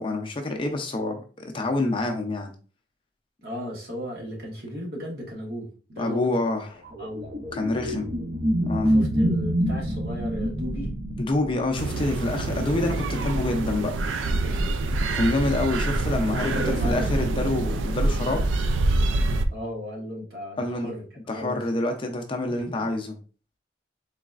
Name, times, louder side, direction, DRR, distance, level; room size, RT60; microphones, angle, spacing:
voice 1, 0.0-2.5 6.0-6.8 7.5-8.1 8.6-8.9 11.2-13.9 15.1-18.5 20.6-20.9 21.3-23.2, left 2 dB, 25° left, 4 dB, 0.4 m, -27 dB
voice 2, 3.4-6.3 7.0-7.3 8.9-11.0 12.4-12.7 14.4-14.8 16.3-17.2 19.5-21.6 22.5-22.9, equal, 55° right, -1 dB, 1.2 m, -36 dB
sound 1, 6.9-11.9, equal, 35° right, 0.5 m, -26 dB
sound 2, 11.8-19.5, right 2 dB, 90° right, 0.4 m, -26 dB
3.9 x 3.1 x 2.4 m, 0.38 s
head